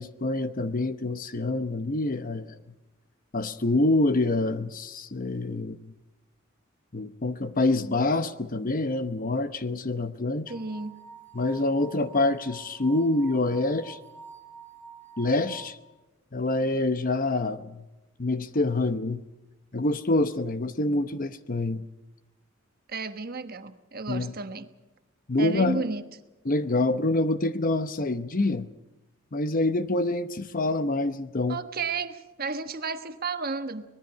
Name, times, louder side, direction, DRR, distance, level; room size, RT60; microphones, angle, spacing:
voice 1, 0.0-2.5 3.3-5.8 6.9-10.5 11.3-14.0 15.2-15.8 16.3-17.8 18.2-19.2 19.7-21.8 24.1-24.3 25.3-25.8 26.4-28.7 29.3-31.6, left 2 dB, 45° left, 12 dB, 0.9 m, -26 dB
sound 1, 10.5-15.6, right 6 dB, 10° left, 3.0 m, -47 dB
voice 2, 10.5-11.0 22.9-24.7 25.4-26.0 31.5-33.8, right 4 dB, 50° right, 9 dB, 1.3 m, -32 dB
24.5 x 20.0 x 5.7 m, 1.1 s
head